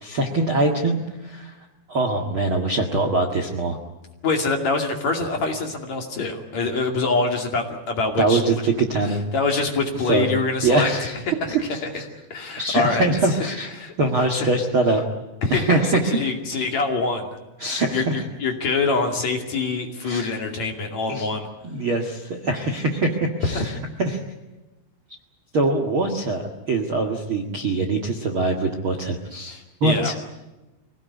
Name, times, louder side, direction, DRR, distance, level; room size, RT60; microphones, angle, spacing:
voice 1, 0.0-1.5 1.9-3.8 8.2-9.2 10.0-10.3 10.6-11.2 11.5-12.1 12.6-15.0 15.5-16.3 17.6-18.1 20.0-20.3 21.1-21.3 21.7-23.7 24.0-24.2 25.5-30.1, right 2 dB, 45° right, 4 dB, 1.8 m, -23 dB
voice 2, 4.2-8.4 9.1-10.9 11.3-11.5 12.3-13.4 13.8-13.9 14.4-14.5 15.4-17.3 17.9-21.5 23.5-23.6 29.5-30.2, left 3 dB, 45° left, 3 dB, 3.3 m, -25 dB
25.0 x 18.5 x 9.5 m, 1.0 s
omnidirectional pair, 4.9 m